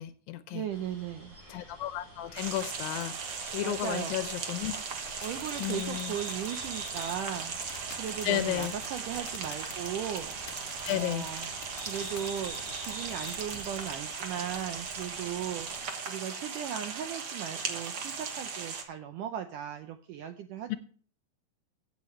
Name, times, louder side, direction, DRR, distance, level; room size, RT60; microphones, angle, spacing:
voice 1, 0.0-0.7 1.5-4.7 5.6-6.1 8.2-8.7 10.9-11.3 20.7-20.8, left 14 dB, 80° left, 11 dB, 2.3 m, -33 dB
voice 2, 0.5-1.4 3.6-4.2 5.2-7.5 7.9-10.4 10.9-11.5 11.9-15.7 16.1-20.8, right 9 dB, 80° right, 7 dB, 1.9 m, -37 dB
sound 1, 0.7-15.8, right 1 dB, 40° right, 7.2 m, -49 dB
sound 2, 2.4-18.8, right 5 dB, 60° right, 1.5 m, -38 dB
sound 3, 5.1-13.9, left 6 dB, 50° left, 2.8 m, -48 dB
16.5 x 8.5 x 3.2 m, 0.44 s
omnidirectional pair, 4.5 m